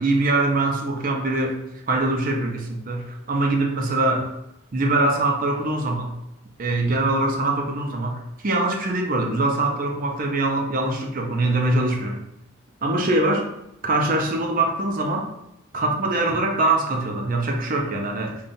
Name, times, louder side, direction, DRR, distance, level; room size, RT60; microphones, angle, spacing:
voice 1, 0.0-1.6 1.9-4.3 4.7-6.1 6.6-12.2 12.8-13.5 13.8-15.3 15.7-18.4, right 2 dB, 40° right, 2 dB, 0.5 m, -23 dB
5.2 x 2.3 x 2.6 m, 0.84 s
head